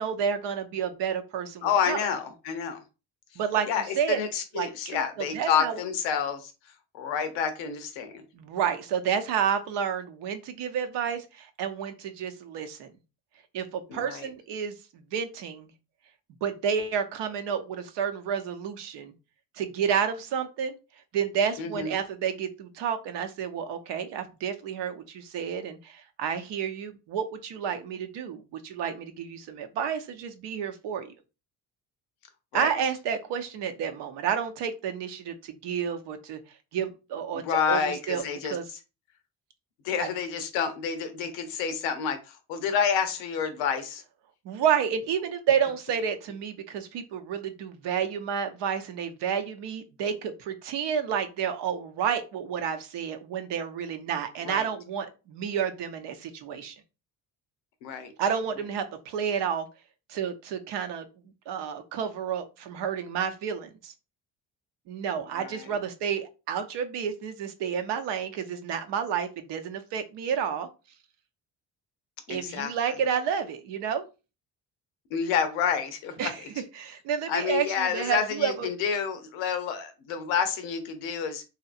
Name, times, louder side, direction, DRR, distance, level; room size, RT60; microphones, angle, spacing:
voice 1, 0.0-2.0 3.4-4.2 4.5-5.8 8.3-12.9 13.5-15.7 16.4-19.1 19.6-20.7 21.1-31.1 32.5-36.4 36.7-37.8 38.1-38.6 44.4-56.8 58.2-59.7 60.1-61.0 61.5-63.9 64.9-70.7 72.3-74.1 76.2-76.4 76.7-78.7, right 7 dB, 70° right, 8 dB, 0.7 m, -30 dB
voice 2, 1.6-2.8 3.7-6.5 6.9-8.2 13.9-14.3 21.6-21.9 32.5-32.7 37.3-38.6 39.8-44.0 54.4-54.7 57.8-58.1 65.4-65.6 72.3-72.7 75.1-76.3 77.3-81.4, left 7 dB, 90° left, 8 dB, 0.6 m, -29 dB
2.8 x 2.4 x 2.4 m, 0.30 s
supercardioid pair, 60°, 44 cm